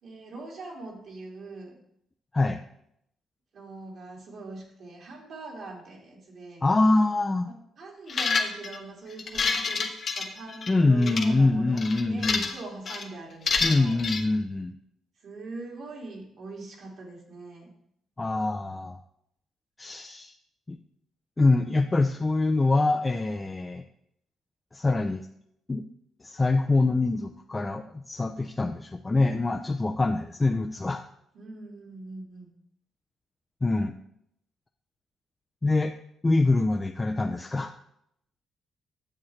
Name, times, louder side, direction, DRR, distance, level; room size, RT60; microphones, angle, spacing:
voice 1, 0.0-1.7 3.5-6.6 7.5-14.1 15.2-17.7 31.3-32.5, right 3 dB, 65° right, -2 dB, 2.2 m, -42 dB
voice 2, 6.6-7.5 10.7-12.5 13.6-14.7 18.2-19.0 19.8-20.3 20.7-20.8 21.4-23.8 24.7-25.2 25.7-25.8 26.2-31.0 33.6-33.9 35.6-35.9 36.2-37.7, left 2 dB, 20° left, 5 dB, 0.4 m, -24 dB
sound 1, 8.1-8.8 9.2-10.7 11.0-11.3 11.8-12.6 12.9-13.1 13.5-14.2, left 4 dB, 50° left, 0.9 m, -27 dB
8.7 x 7.1 x 3.2 m, 0.74 s
cardioid pair, 90°, 0 cm